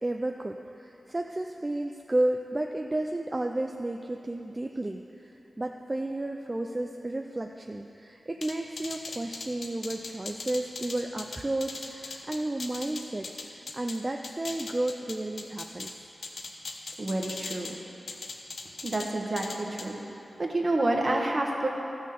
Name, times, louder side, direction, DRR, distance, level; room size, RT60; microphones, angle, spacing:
voice 1, 0.0-16.0, right 1 dB, 25° right, 3 dB, 0.5 m, -32 dB
sound 1, 8.4-14.0 14.2-15.9 16.2-17.7 18.1-19.1 19.4-19.9, left 3 dB, 75° left, 0.9 m, -39 dB
voice 2, 17.0-17.7 18.8-20.0 20.4-21.7, right 2 dB, 45° right, 0 dB, 1.5 m, -28 dB
13.0 x 6.4 x 6.9 m, 2.8 s
wide cardioid pair, 80°, 0 cm